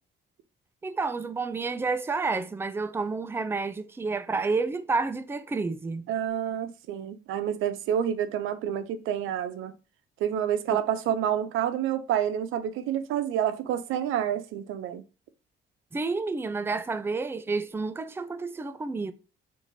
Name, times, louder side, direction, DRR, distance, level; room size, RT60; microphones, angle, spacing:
voice 1, 0.8-6.1 10.7-10.8 15.9-19.1, right 4 dB, 10° right, 0.4 m, -30 dB
voice 2, 6.1-9.7 10.2-15.0, right 10 dB, 85° right, 0.6 m, -28 dB
4.6 x 2.6 x 3.9 m
cardioid pair, 90°, 20 cm